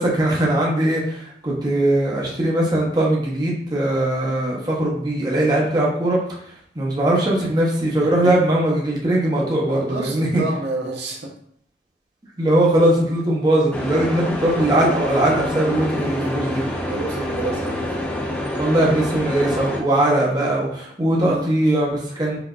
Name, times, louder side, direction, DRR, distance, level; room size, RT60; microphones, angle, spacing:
voice 1, 0.0-6.2 6.7-10.4 12.4-16.6 18.6-22.4, right 1 dB, 25° right, -4 dB, 0.8 m, -20 dB
voice 2, 8.0-8.3 9.7-11.3 16.0-16.3 16.9-17.9 21.2-21.5, right 2 dB, 70° right, -1 dB, 0.6 m, -29 dB
sound 1, 13.7-19.8, left 1 dB, 10° left, 0.5 m, -27 dB
4.8 x 2.6 x 2.3 m, 0.66 s
head